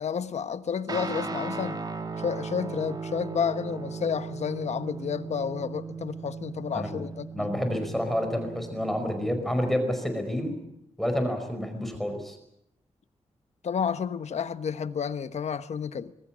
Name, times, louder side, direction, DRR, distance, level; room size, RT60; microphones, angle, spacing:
voice 1, 0.0-1.8 2.2-7.5 13.6-16.1, left 7 dB, 75° left, 1.2 m, -31 dB
Guitar, 0.9-9.7, right 4 dB, 35° right, 3.1 m, -37 dB
voice 2, 7.3-10.5 11.0-12.4, equal, ahead, 5.1 m, -29 dB
26.5 x 21.0 x 7.5 m
wide cardioid pair, 150°, 11 cm